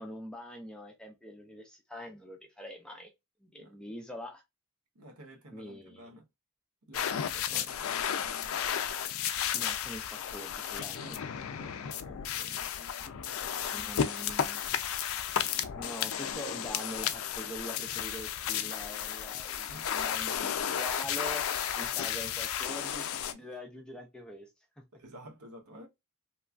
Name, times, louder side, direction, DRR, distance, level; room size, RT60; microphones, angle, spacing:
voice 1, 0.0-3.1 3.4-4.4 5.5-6.1 7.5-7.6 9.5-11.2 11.6-11.7 13.7-14.6 15.8-21.4 21.7-24.5 24.8-24.9, equal, 5° left, 0.5 m, -44 dB
voice 2, 4.9-6.2 6.8-8.6 10.9-14.3 19.7-19.9 23.3-23.5 24.9-25.9, equal, 90° right, 0.9 m, -52 dB
sound 1, 6.9-23.3, left 9 dB, 70° left, 0.4 m, -33 dB
3.0 x 2.3 x 2.4 m
head